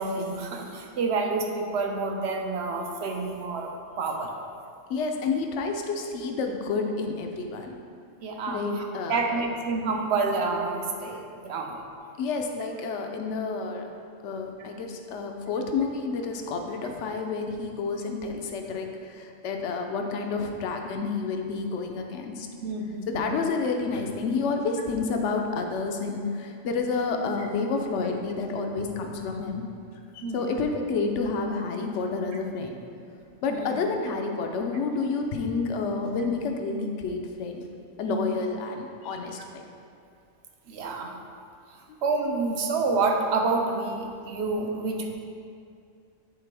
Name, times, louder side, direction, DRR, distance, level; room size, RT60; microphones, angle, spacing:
voice 1, 0.0-3.7 4.0-4.3 8.2-11.8 22.6-23.4 30.2-30.6 33.5-33.6 38.0-38.3 40.7-41.1 42.0-45.1, right 3 dB, 60° right, 2 dB, 0.8 m, -28 dB
voice 2, 4.9-7.7 8.5-9.5 12.2-13.9 14.2-22.5 23.1-29.6 30.1-32.8 33.4-37.6 38.0-39.6, left 4 dB, 65° left, 3 dB, 0.9 m, -29 dB
8.9 x 4.0 x 3.4 m, 2.4 s
omnidirectional pair, 1.4 m